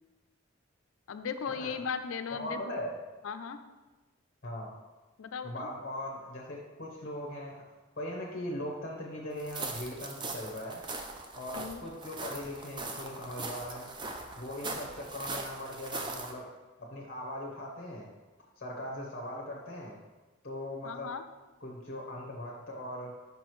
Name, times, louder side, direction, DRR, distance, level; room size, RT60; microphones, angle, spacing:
voice 1, 1.1-2.8 3.2-3.6 5.2-5.7 11.5-11.8 20.8-21.2, left 6 dB, 80° left, 10 dB, 0.4 m, -37 dB
voice 2, 2.3-2.9 4.4-4.7 5.4-7.6 8.0-10.8 11.3-13.9 14.4-16.5 16.8-18.1 18.6-20.0 20.4-21.1 21.6-23.1, left 1 dB, 45° left, -2 dB, 0.9 m, -40 dB
sound 1, 9.4-16.3, right 3 dB, 20° right, 0.4 m, -40 dB
6.0 x 5.4 x 3.1 m, 1.2 s
head